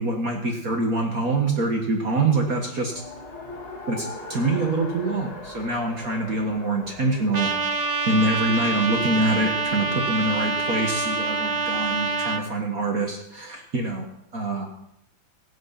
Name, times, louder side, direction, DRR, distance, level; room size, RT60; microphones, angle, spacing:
voice 1, 0.0-2.9 3.9-7.5 8.1-14.1 14.3-14.7, right 2 dB, 50° right, 2 dB, 1.9 m, -25 dB
Race car auto racing, 2.9-12.0, left 2 dB, 30° left, 2.4 m, -42 dB
Trumpet, 7.3-12.4, right 3 dB, 70° right, 0.4 m, -26 dB
16.5 x 7.7 x 5.8 m, 0.80 s
omnidirectional pair, 2.0 m